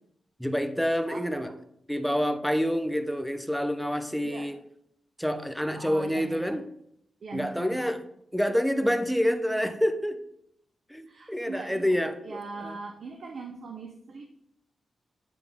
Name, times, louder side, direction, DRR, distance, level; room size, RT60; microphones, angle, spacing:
voice 1, 0.4-1.5 1.9-4.6 5.2-6.6 7.3-8.0 8.3-10.2 10.9-12.7, equal, ahead, 8 dB, 0.5 m, -27 dB
voice 2, 1.1-1.5 4.2-4.5 5.7-6.6 7.2-8.0 11.1-12.0 12.2-14.2, right 4 dB, 60° right, 3 dB, 0.6 m, -41 dB
9.3 x 3.5 x 3.5 m, 0.73 s
wide cardioid pair, 130°, 0 cm